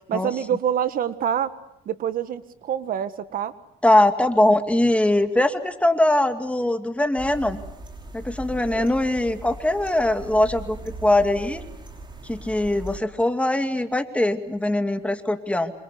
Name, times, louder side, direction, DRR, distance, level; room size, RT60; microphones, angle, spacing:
voice 1, 0.1-1.5 1.8-3.5 8.7-8.9, right 9 dB, 55° right, 12 dB, 1.7 m, -26 dB
voice 2, 3.8-7.6 8.1-11.7 12.2-15.7, left 1 dB, 5° left, 7 dB, 2.4 m, -21 dB
sound 1, 7.2-13.0, right 2 dB, 25° right, 5.5 m, -39 dB
27.0 x 26.5 x 8.3 m, 0.78 s
cardioid pair, 110°, 17 cm